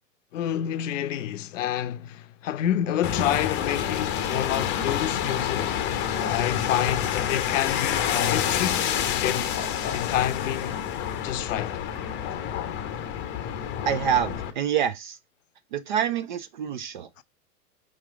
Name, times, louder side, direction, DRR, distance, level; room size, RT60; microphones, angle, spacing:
voice 1, 0.3-5.8 6.2-9.5 9.9-10.8 11.2-11.8 17.2-17.3, left 11 dB, 55° left, 0.6 m, -28 dB
sound 1, 3.0-14.5, left 9 dB, 25° left, 0.7 m, -28 dB
voice 2, 13.9-15.2 15.7-17.1, right 9 dB, 35° right, 0.4 m, -26 dB
5.0 x 3.2 x 3.4 m
hypercardioid pair, 120°, 46 cm